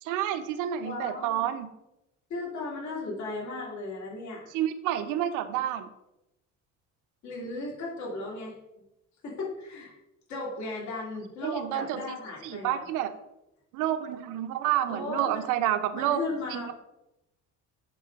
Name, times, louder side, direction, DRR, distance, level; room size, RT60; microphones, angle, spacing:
voice 1, 0.0-1.7 4.5-5.9 11.4-12.2 12.4-13.1 13.7-16.2 16.5-16.7, right 11 dB, 85° right, 9 dB, 0.8 m, -29 dB
voice 2, 0.8-1.5 2.3-4.5 7.2-8.6 9.2-10.0 10.3-12.9 14.9-15.5 15.9-16.7, left 2 dB, 65° left, -4 dB, 2.8 m, -36 dB
8.6 x 3.8 x 5.1 m, 0.91 s
cardioid pair, 145°, 30 cm